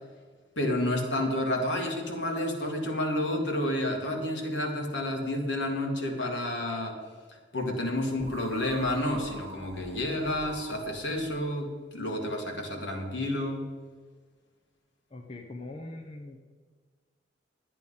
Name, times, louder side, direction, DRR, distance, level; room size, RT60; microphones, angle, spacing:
voice 1, 0.6-7.0 7.5-13.6, left 1 dB, 70° left, 1 dB, 2.2 m, -30 dB
sound 1, 8.2-11.4, right 3 dB, 35° right, 1.8 m, -46 dB
voice 2, 15.1-16.4, left 2 dB, 30° left, 1 dB, 1.0 m, -42 dB
11.5 x 9.1 x 5.6 m, 1.5 s
head